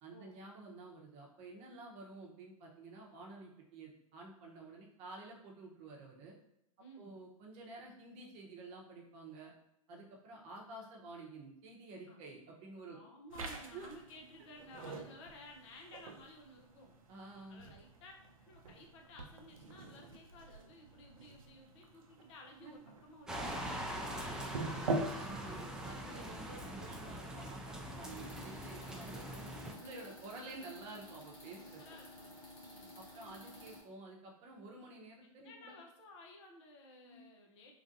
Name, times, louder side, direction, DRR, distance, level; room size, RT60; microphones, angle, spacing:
voice 1, 0.0-6.3 7.0-9.5 9.9-13.0 13.4-13.9 17.1-17.6 22.6-22.7 25.1-31.8 33.0-35.7 37.0-37.2, right 3 dB, 40° right, -1 dB, 0.8 m, -51 dB
voice 2, 6.8-7.2 12.1-12.2 12.9-16.9 17.5-18.1 18.4-25.1 31.8-33.0 35.4-37.7, left 1 dB, 55° left, 1 dB, 0.8 m, -56 dB
sound 1, 13.3-28.0, right 2 dB, 80° right, 0.5 m, -46 dB
sound 2, 23.3-29.7, right 1 dB, 5° right, 0.4 m, -43 dB
sound 3, 28.0-33.8, left 1 dB, 75° left, 1.3 m, -53 dB
3.2 x 2.5 x 2.6 m, 0.80 s
hypercardioid pair, 100°, 17 cm